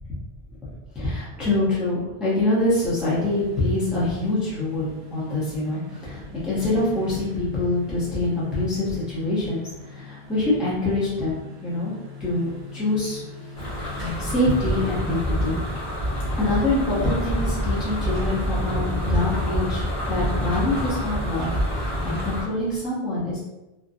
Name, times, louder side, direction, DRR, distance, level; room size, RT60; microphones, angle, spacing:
voice 1, 0.9-11.9 12.2-13.2 14.0-15.6 16.4-23.4, left 2 dB, ahead, -9 dB, 0.6 m, -25 dB
sound 1, 3.1-22.3, left 2 dB, 55° right, 0.8 m, -41 dB
sound 2, 13.6-22.4, equal, 50° left, 1.0 m, -26 dB
2.6 x 2.1 x 2.5 m, 1.0 s
omnidirectional pair, 1.0 m